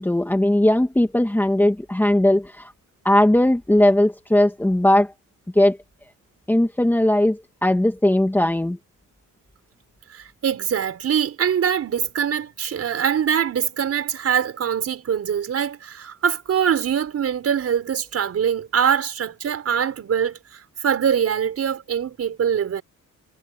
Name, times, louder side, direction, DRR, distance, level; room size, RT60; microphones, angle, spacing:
voice 1, 0.0-2.7 3.0-5.1 5.6-5.8 6.5-8.8, left 1 dB, 5° left, 2.3 m, -18 dB
voice 2, 10.1-20.4 20.8-22.8, right 8 dB, 45° right, 6.2 m, -23 dB
cardioid pair, 155°, 33 cm